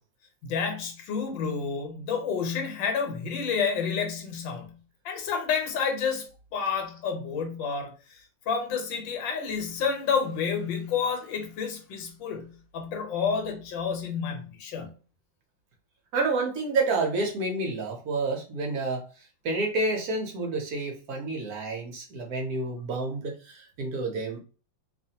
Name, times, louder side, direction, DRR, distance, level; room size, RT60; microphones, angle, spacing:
voice 1, 0.4-4.8 5.0-8.2 8.5-14.9, left 6 dB, 80° left, 1.4 m, -30 dB
voice 2, 16.1-19.0 19.4-24.4, right 3 dB, 70° right, 0.9 m, -29 dB
2.8 x 2.5 x 2.7 m
omnidirectional pair, 2.0 m